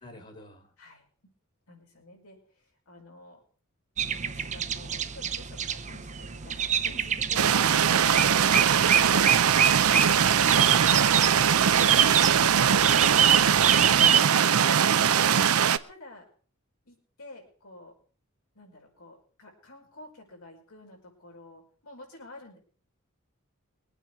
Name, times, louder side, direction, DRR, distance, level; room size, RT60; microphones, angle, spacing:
voice 1, 0.0-0.7 7.8-8.4, left 1 dB, 35° left, 6 dB, 1.7 m, -44 dB
voice 2, 1.7-3.4 4.1-11.6 15.9-16.2 16.9-17.9 18.6-22.6, left 2 dB, 90° left, -1 dB, 5.3 m, -49 dB
sound 1, 4.0-14.2, right 8 dB, 35° right, 0.7 m, -26 dB
sound 2, 7.4-15.8, right 8 dB, 85° right, 0.6 m, -21 dB
23.0 x 9.0 x 4.7 m, 0.42 s
head